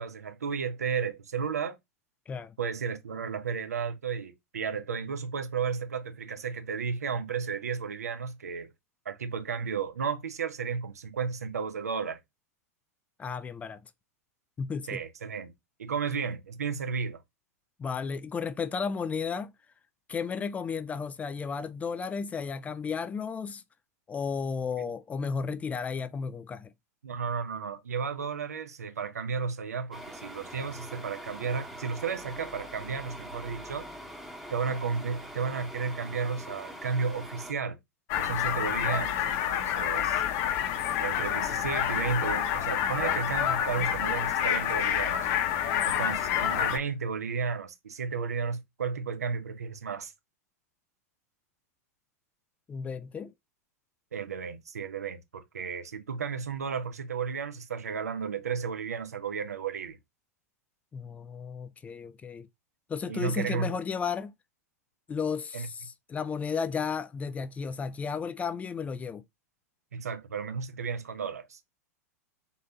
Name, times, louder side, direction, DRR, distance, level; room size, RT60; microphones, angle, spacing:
voice 1, 0.0-1.8 2.6-8.7 9.0-12.2 14.9-15.5 15.8-17.2 27.0-33.9 34.5-37.8 38.2-40.2 41.0-45.2 45.8-50.1 54.1-60.0 63.1-63.7 65.5-65.7 69.9-71.6, right 5 dB, 75° right, 0.8 m, -33 dB
voice 2, 13.2-13.8 14.6-15.0 17.8-19.5 20.1-23.6 24.1-26.7 52.7-53.3 60.9-62.5 62.9-64.3 65.1-69.2, left 5 dB, 15° left, 0.3 m, -33 dB
sound 1, 29.9-37.5, equal, ahead, 0.9 m, -44 dB
sound 2, 38.1-46.8, left 10 dB, 45° left, 0.9 m, -28 dB
4.0 x 3.7 x 2.8 m
figure-of-eight pair, 95°, 8 cm